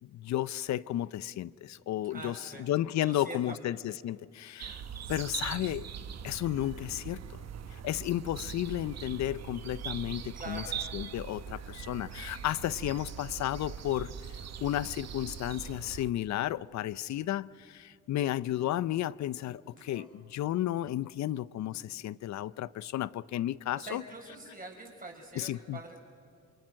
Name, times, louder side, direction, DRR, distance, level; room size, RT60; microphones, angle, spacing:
voice 1, 0.0-4.8 5.1-5.9 6.2-7.4 7.8-10.6 10.9-14.1 14.6-24.0 25.4-25.8, left 13 dB, 65° left, 0.6 m, -33 dB
voice 2, 2.1-2.7 3.0-3.6 10.4-10.7 19.9-20.1 23.8-26.0, right 2 dB, 30° right, 5.7 m, -44 dB
sound 1, 4.6-16.1, right 8 dB, 60° right, 1.2 m, -41 dB
27.5 x 24.5 x 6.4 m
cardioid pair, 90°, 30 cm